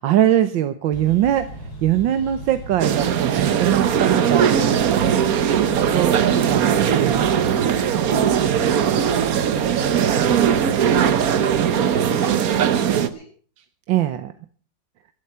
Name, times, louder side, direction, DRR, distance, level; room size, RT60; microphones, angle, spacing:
voice 1, 0.0-1.5 1.8-7.3 7.6-7.9 8.4-8.6 13.9-14.3, right 12 dB, 85° right, 10 dB, 1.6 m, -22 dB
sound 1, 0.9-11.7, right 1 dB, 55° left, 4.3 m, -37 dB
sound 2, 2.8-13.1, right 8 dB, 55° right, 1.3 m, -19 dB
voice 2, 5.7-6.2 8.4-13.3, left 2 dB, 80° left, 1 dB, 6.7 m, -45 dB
15.0 x 12.0 x 5.6 m, 0.41 s
omnidirectional pair, 2.0 m